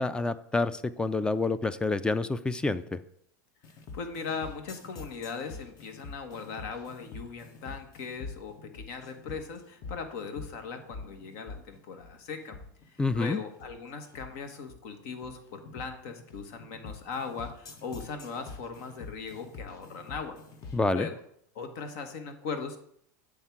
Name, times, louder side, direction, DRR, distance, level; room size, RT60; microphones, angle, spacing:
voice 1, 0.0-3.0 13.0-13.4 20.7-21.1, left 3 dB, 10° left, 14 dB, 0.4 m, -28 dB
sound 1, 3.6-20.9, left 4 dB, 45° left, 1.2 m, -46 dB
voice 2, 3.9-12.6 12.9-20.4 20.9-21.2 21.5-22.8, left 5 dB, 65° left, 7 dB, 1.3 m, -39 dB
8.7 x 3.6 x 5.8 m, 0.69 s
hypercardioid pair, 110°, 10 cm